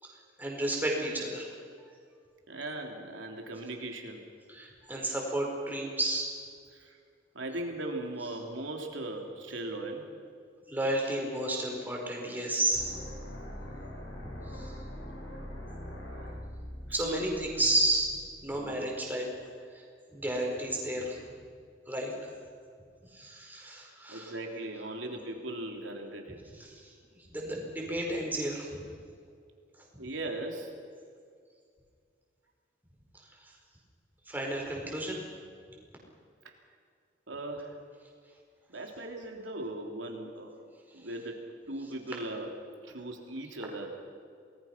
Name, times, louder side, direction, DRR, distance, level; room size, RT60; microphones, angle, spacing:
voice 1, 0.0-1.5 4.5-6.3 10.7-12.9 14.4-14.8 16.9-18.1 18.4-19.3 19.7-19.8 20.1-21.2 21.9-22.3 23.1-24.3 26.6-26.9 27.3-28.8 29.8-29.9 33.4-33.5 34.3-35.2, right 1 dB, 10° right, -1 dB, 4.9 m, -32 dB
voice 2, 2.5-4.2 6.7-7.0 7.3-10.0 16.2-16.3 16.9-17.2 18.5-18.9 24.1-26.4 30.0-30.7 37.3-37.8 38.7-40.6 40.9-41.4 41.7-42.5 42.8-43.9, right 1 dB, 85° right, 2 dB, 3.5 m, -38 dB
sound 1, 12.7-18.7, equal, 85° left, 5.7 m, -43 dB
28.0 x 20.0 x 6.0 m, 2.2 s
head